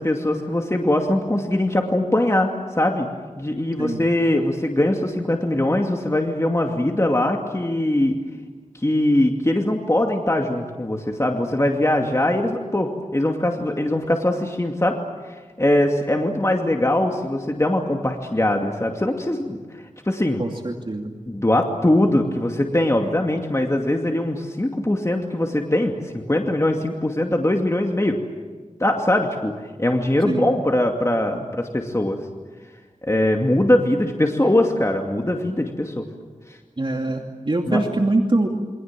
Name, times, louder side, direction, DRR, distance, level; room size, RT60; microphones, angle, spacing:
voice 1, 0.0-3.1 3.4-8.2 8.8-15.0 15.3-19.6 20.1-20.4 21.3-28.2 28.8-32.2 33.0-36.1 36.5-36.6 37.7-37.8, left 1 dB, 25° left, 2 dB, 2.6 m, -21 dB
voice 2, 20.4-21.1 30.3-30.5 36.8-38.5, right 2 dB, 40° right, 2 dB, 2.6 m, -23 dB
29.0 x 25.0 x 7.6 m, 1.4 s
wide cardioid pair, 65°, 13 cm